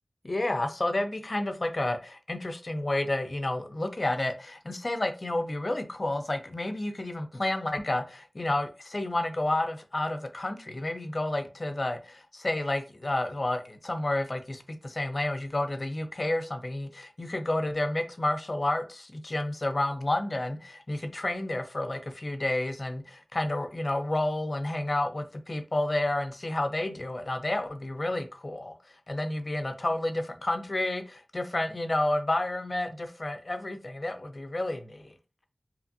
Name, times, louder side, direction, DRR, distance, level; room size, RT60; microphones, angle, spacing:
voice 1, 0.2-28.7 29.1-35.1, left 1 dB, 45° left, 0.4 m, -30 dB
2.8 x 2.5 x 2.5 m
wide cardioid pair, 60°, 0 cm